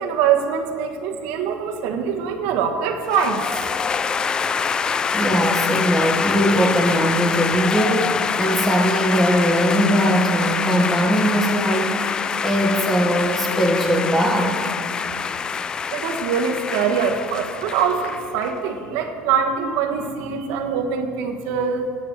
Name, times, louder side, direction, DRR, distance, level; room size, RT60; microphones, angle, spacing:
voice 1, 0.0-3.4 15.9-21.9, right 7 dB, 75° right, 2 dB, 1.3 m, -23 dB
sound 1, 3.1-18.6, left 6 dB, 20° left, 0.3 m, -25 dB
voice 2, 5.1-12.0 12.4-14.6, equal, 5° left, 1 dB, 1.7 m, -20 dB
9.6 x 8.0 x 8.6 m, 2.4 s
cardioid pair, 135°, 4 cm